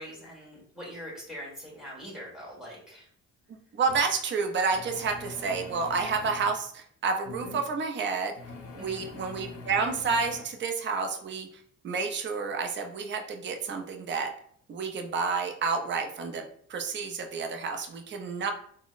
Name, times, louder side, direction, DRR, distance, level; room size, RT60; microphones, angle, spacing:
voice 1, 0.0-3.1 8.8-9.1, equal, ahead, -5 dB, 1.4 m, -43 dB
voice 2, 3.5-8.4 8.7-11.5 11.8-14.3 14.7-18.5, right 5 dB, 40° right, 5 dB, 0.5 m, -30 dB
sound 1, 3.8-4.0 4.7-6.5 7.2-7.6 8.4-10.5, left 3 dB, 50° left, 0.7 m, -43 dB
3.8 x 2.1 x 2.4 m, 0.63 s
cardioid pair, 90°, 30 cm